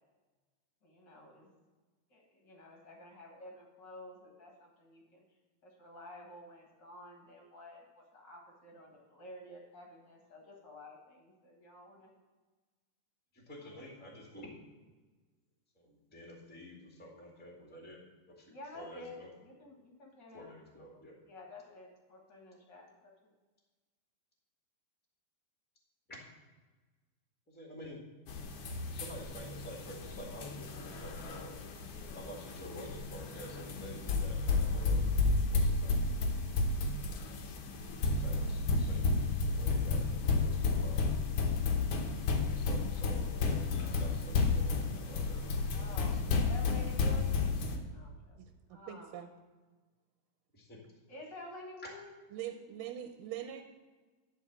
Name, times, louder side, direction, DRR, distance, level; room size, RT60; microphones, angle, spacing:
voice 1, 0.8-1.5 2.1-5.2 5.6-12.1 13.6-14.0 18.5-23.3 45.7-47.5 47.9-48.4 48.7-49.3 51.1-52.3 53.5-53.6, left 1 dB, 40° left, 0 dB, 1.9 m, -51 dB
voice 2, 13.3-14.5 15.7-18.0 18.4-19.3 20.3-21.1 27.5-28.0 28.9-31.6 32.1-35.0 35.5-36.0 38.1-39.1 39.5-41.1 42.5-46.5 50.5-50.8, equal, 5° left, -1 dB, 1.3 m, -50 dB
sound 1, 28.3-47.8, left 3 dB, 70° left, 1.4 m, -32 dB
voice 3, 48.4-49.3 52.3-53.6, right 11 dB, 90° right, 7 dB, 2.2 m, -43 dB
11.5 x 4.7 x 7.2 m, 1.3 s
omnidirectional pair, 3.8 m